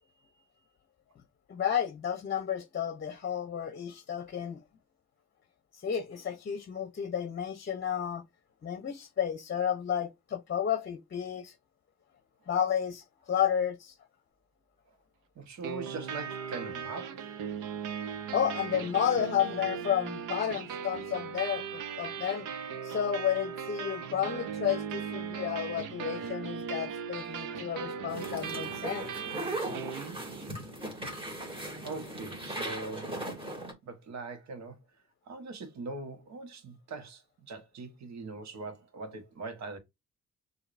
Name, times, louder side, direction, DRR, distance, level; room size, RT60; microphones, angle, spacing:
voice 1, 1.5-4.6 5.7-8.2 8.6-11.5 12.5-13.9 18.1-22.5 22.8-29.1, left 9 dB, 35° left, 0.7 m, -32 dB
voice 2, 15.3-17.3 31.8-33.3 33.8-34.8 35.3-39.8, right 3 dB, 65° right, 1.4 m, -41 dB
sound 1, 15.6-30.6, right 7 dB, 85° right, 0.9 m, -38 dB
sound 2, 28.1-33.7, right 1 dB, 15° right, 2.6 m, -38 dB
6.4 x 2.7 x 2.6 m
cardioid pair, 90°, 30 cm